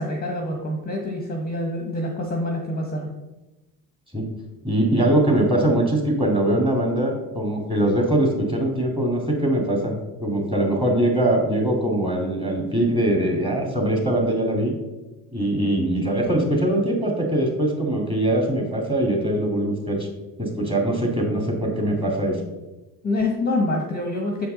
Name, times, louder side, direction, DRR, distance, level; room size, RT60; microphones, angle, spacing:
voice 1, 0.0-3.1 23.0-24.5, left 2 dB, 20° left, 2 dB, 0.9 m, -26 dB
voice 2, 4.6-14.7 15.3-20.1 20.4-22.4, right 1 dB, 10° right, 0 dB, 1.9 m, -22 dB
7.1 x 4.6 x 3.7 m, 1.1 s
hypercardioid pair, 70°, 48 cm